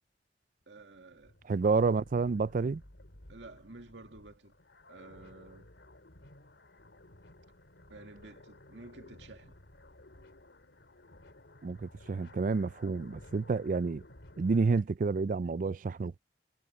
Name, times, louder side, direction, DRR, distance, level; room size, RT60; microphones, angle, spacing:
sound 1, 0.6-14.8, left 1 dB, 85° left, 3.1 m, -56 dB
voice 1, 0.7-1.3 3.3-4.5 4.9-5.7 7.9-9.6, right 2 dB, 90° right, 2.3 m, -51 dB
voice 2, 1.5-2.8 11.6-14.0 14.4-16.2, right 4 dB, 45° right, 0.4 m, -29 dB
head